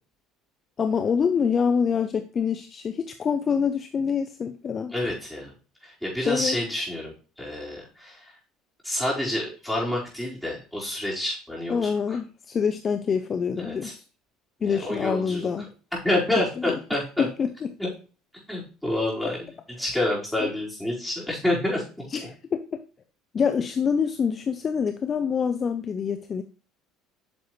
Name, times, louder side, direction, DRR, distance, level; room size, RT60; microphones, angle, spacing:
voice 1, 0.8-4.9 6.3-6.6 11.7-14.0 14.6-15.7 16.6-16.8 17.2-17.7 20.4-20.5 22.1-22.8 23.3-26.4, left 6 dB, 35° left, 8 dB, 0.6 m, -26 dB
voice 2, 4.9-5.5 5.8-8.3 8.8-12.2 13.6-13.9 14.6-15.5 16.0-17.2 17.8-17.9 18.5-19.5 19.8-21.8, left 1 dB, ahead, -5 dB, 4.8 m, -28 dB
9.3 x 6.6 x 3.2 m, 0.36 s
supercardioid pair, 105°, 0 cm